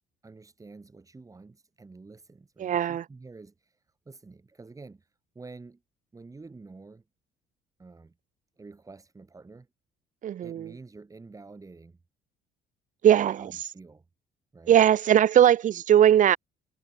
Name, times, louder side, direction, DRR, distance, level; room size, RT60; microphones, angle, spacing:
voice 1, 0.2-5.8 6.1-7.0 7.8-8.1 8.6-9.7 10.4-12.0 13.3-14.0 14.5-14.8, right 3 dB, 20° right, 3.9 m, -48 dB
voice 2, 2.6-3.0 10.2-10.7 13.0-13.5 14.7-16.4, right 10 dB, 50° right, 0.9 m, -20 dB
cardioid pair, 110°, 17 cm